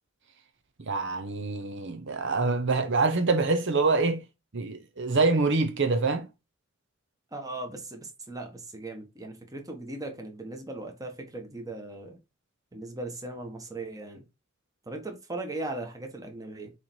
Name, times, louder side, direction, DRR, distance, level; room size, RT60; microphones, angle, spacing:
voice 1, 0.8-4.2 4.5-6.3, right 3 dB, 60° right, 0.9 m, -25 dB
voice 2, 7.3-12.2 12.7-14.2 14.9-16.7, right 2 dB, 15° right, 1.5 m, -38 dB
6.9 x 3.4 x 4.5 m
head